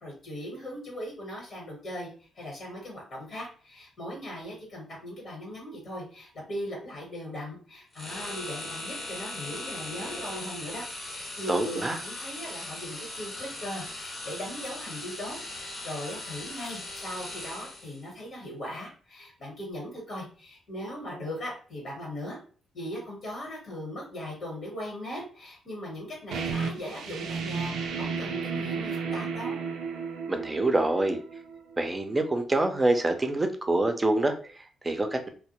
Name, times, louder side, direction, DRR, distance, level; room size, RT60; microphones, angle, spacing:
voice 1, 0.0-22.4 22.7-29.6, equal, 60° left, -2 dB, 1.1 m, -39 dB
sound 1, 7.9-18.1, left 2 dB, 35° left, 0.8 m, -39 dB
voice 2, 11.5-12.0 30.3-31.2 31.8-35.3, right 2 dB, 25° right, 6 dB, 0.5 m, -26 dB
sound 2, 26.3-31.8, right 5 dB, 75° right, 0.3 m, -33 dB
2.1 x 2.0 x 2.9 m, 0.40 s
supercardioid pair, 50°, 0 cm